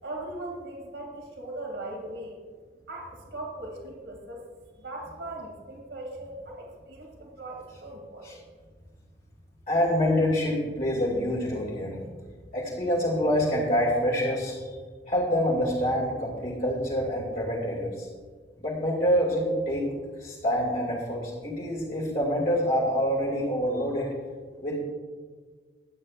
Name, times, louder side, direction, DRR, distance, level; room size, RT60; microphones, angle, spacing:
voice 1, 0.0-2.4 2.9-4.4 4.8-8.4, right 1 dB, 80° right, 0 dB, 2.6 m, -39 dB
voice 2, 9.7-12.1 12.5-14.8 15.1-18.1 18.6-19.9 20.2-24.1 24.6-24.8, equal, 50° left, -6 dB, 2.4 m, -26 dB
21.0 x 8.8 x 2.5 m, 1.5 s
head